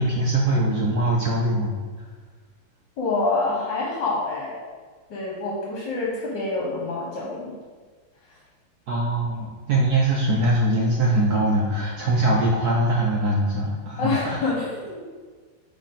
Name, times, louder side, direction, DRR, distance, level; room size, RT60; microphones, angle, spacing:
voice 1, 0.0-1.7 8.9-14.4, right 1 dB, 70° right, -2 dB, 0.9 m, -22 dB
voice 2, 3.0-4.6 5.1-7.6 14.0-15.0, left 3 dB, 60° left, -4 dB, 1.6 m, -26 dB
8.2 x 3.6 x 3.8 m, 1.5 s
omnidirectional pair, 2.4 m